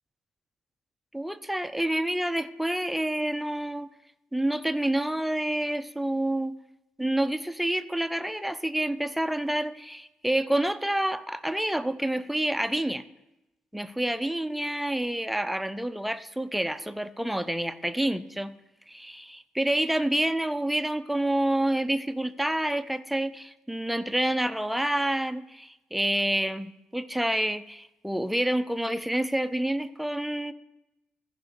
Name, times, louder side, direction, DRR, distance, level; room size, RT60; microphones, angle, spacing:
voice 1, 1.1-3.9 4.3-6.6 7.0-13.0 13.7-18.5 18.9-30.5, right 1 dB, ahead, 12 dB, 0.5 m, -28 dB
15.0 x 5.1 x 5.0 m, 0.95 s
figure-of-eight pair, 45°, 5 cm